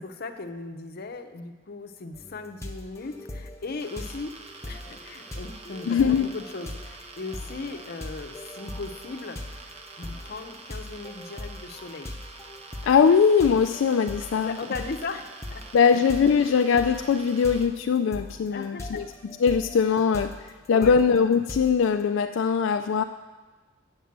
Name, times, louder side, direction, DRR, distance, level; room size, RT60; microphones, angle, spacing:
voice 1, 0.0-4.3 4.6-12.1 14.3-16.6 18.5-19.0 20.7-21.0, left 3 dB, 50° left, 6 dB, 0.7 m, -38 dB
sound 1, 2.1-22.0, left 1 dB, 15° left, 0.8 m, -41 dB
sound 2, 3.8-17.7, right 3 dB, 35° right, 0.7 m, -46 dB
voice 2, 5.9-6.3 12.8-14.6 15.7-19.0 19.4-23.0, left 6 dB, 75° left, 7 dB, 0.3 m, -21 dB
8.0 x 7.3 x 7.4 m, 1.3 s
head